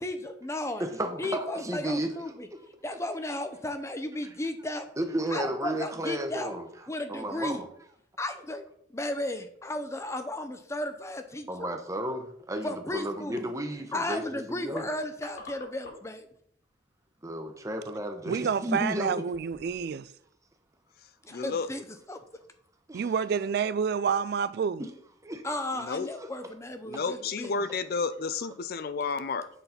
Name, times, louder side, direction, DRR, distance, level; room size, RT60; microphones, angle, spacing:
voice 1, 0.0-0.8 1.2-2.5 2.8-4.9 5.3-6.5 6.9-7.6 8.2-8.7 8.9-11.7 12.6-13.5 13.9-16.3 21.2-22.2 25.4-27.5, left 1 dB, 15° left, 0.7 m, -34 dB
voice 2, 0.8-2.1 2.5-2.6 2.9-3.0 4.2-4.3 5.0-7.7 11.5-14.8 17.2-19.2 22.9-23.1 24.8-24.9 25.2-25.4 26.2-26.3, right 1 dB, 15° right, 0.9 m, -33 dB
sound 1, 9.3-9.6 9.9-10.0 10.7-11.2 14.1-14.2 14.5-16.2 16.5-16.7 17.4-17.7 18.2-18.4 19.2-20.0 20.3-20.4, left 2 dB, 70° left, 3.1 m, -50 dB
voice 3, 18.3-20.1 22.9-24.8, right 6 dB, 55° right, 0.3 m, -28 dB
voice 4, 21.3-21.7 25.7-26.1 26.8-29.5, left 4 dB, 50° left, 0.4 m, -31 dB
8.0 x 4.1 x 5.8 m
head